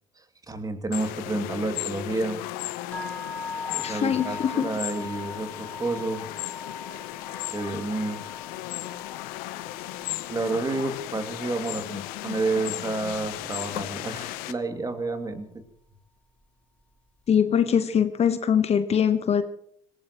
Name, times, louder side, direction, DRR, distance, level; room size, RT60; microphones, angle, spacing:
voice 1, 0.2-2.4 3.7-6.3 7.5-8.2 10.3-15.6, right 2 dB, 20° right, 7 dB, 2.5 m, -30 dB
sound 1, 0.9-14.5, left 16 dB, 65° left, 0.9 m, -36 dB
sound 2, 2.9-13.0, left 4 dB, 5° left, 4.0 m, -41 dB
voice 2, 3.8-4.7 17.3-19.4, left 8 dB, 40° left, 11 dB, 1.1 m, -22 dB
26.0 x 17.5 x 3.0 m, 0.67 s
figure-of-eight pair, 60°, 17 cm